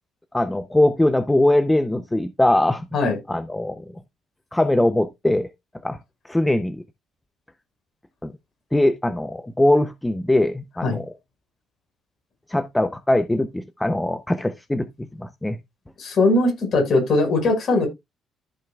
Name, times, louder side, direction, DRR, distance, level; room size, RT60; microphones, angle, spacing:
voice 1, 0.3-2.9 3.3-3.8 4.5-5.5 5.8-6.0 6.3-6.8 8.2-8.3 8.7-11.1 12.5-14.9 15.2-15.6, left 1 dB, 10° left, 0.5 m, -21 dB
voice 2, 16.0-17.9, left 2 dB, 45° left, 5.0 m, -20 dB
14.0 x 5.8 x 2.3 m
cardioid pair, 145°, 0 cm